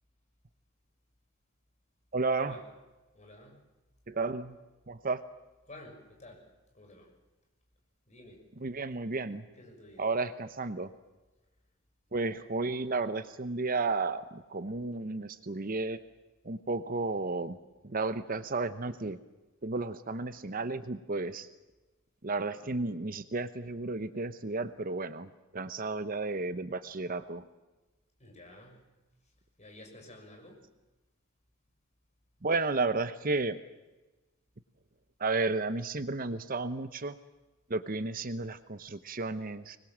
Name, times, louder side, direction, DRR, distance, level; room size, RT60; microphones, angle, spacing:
voice 1, 2.1-2.5 4.1-4.6 4.9-5.2 8.6-9.5 10.0-10.9 12.1-16.0 16.4-17.6 17.8-19.2 19.6-21.5 22.2-27.4 32.4-33.6 35.2-37.2 37.7-39.8, right 3 dB, 45° right, 12 dB, 0.9 m, -33 dB
voice 2, 3.1-3.6 5.7-6.5 6.7-7.1 8.1-8.4 9.5-10.1 28.2-28.8 29.6-30.7, left 1 dB, 35° left, 2 dB, 6.3 m, -51 dB
25.0 x 20.5 x 7.4 m, 1.1 s
head